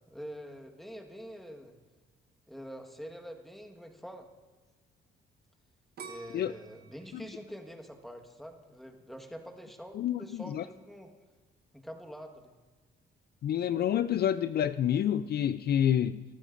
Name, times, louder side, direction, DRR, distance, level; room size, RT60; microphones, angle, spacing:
voice 1, 0.1-1.7 2.5-4.3 6.0-11.1 11.7-12.5, equal, ahead, 4 dB, 1.5 m, -45 dB
sound 1, 6.0-8.9 9.4-9.9, right 5 dB, 55° right, 1.2 m, -50 dB
voice 2, 9.9-10.6 13.4-16.2, left 10 dB, 55° left, 13 dB, 0.4 m, -28 dB
21.5 x 12.5 x 2.6 m, 1.3 s
cardioid pair, 90°, 20 cm